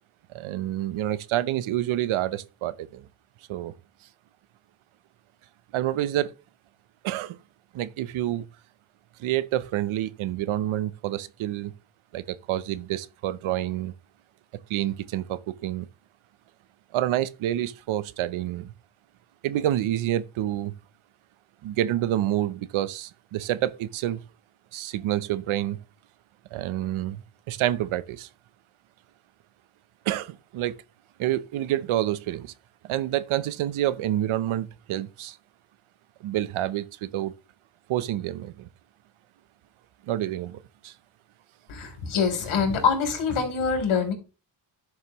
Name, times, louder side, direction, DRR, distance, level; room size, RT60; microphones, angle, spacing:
voice 1, 0.3-3.1 3.5-3.7 5.7-6.3 7.0-7.4 7.7-8.5 9.2-11.7 12.1-13.9 14.7-15.9 16.9-18.7 19.4-20.7 21.6-24.2 24.7-25.8 26.5-28.3 30.1-30.8 31.2-32.5 32.8-35.4 36.2-37.3 37.9-38.7 40.1-40.9, right 13 dB, 80° right, 0.9 m, -28 dB
voice 2, 41.7-44.1, left 6 dB, 75° left, 3.8 m, -25 dB
11.5 x 6.5 x 3.1 m
cardioid pair, 90°, 49 cm